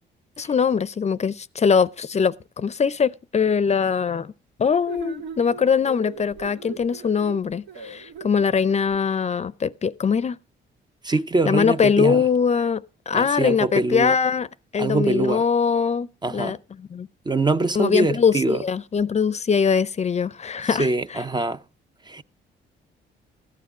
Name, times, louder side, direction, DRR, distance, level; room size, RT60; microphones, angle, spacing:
voice 1, 0.4-4.3 4.6-10.4 11.4-14.5 14.7-17.1 17.8-21.2, left 6 dB, 35° left, 0.5 m, -22 dB
sound 1, 4.9-9.0, right 3 dB, 85° right, 2.3 m, -38 dB
voice 2, 11.0-12.2 13.1-14.1 14.8-15.4 16.2-16.6 17.3-18.6 20.8-21.6 22.1-22.2, right 2 dB, 20° right, 0.5 m, -23 dB
14.0 x 9.4 x 4.9 m
cardioid pair, 90°, 20 cm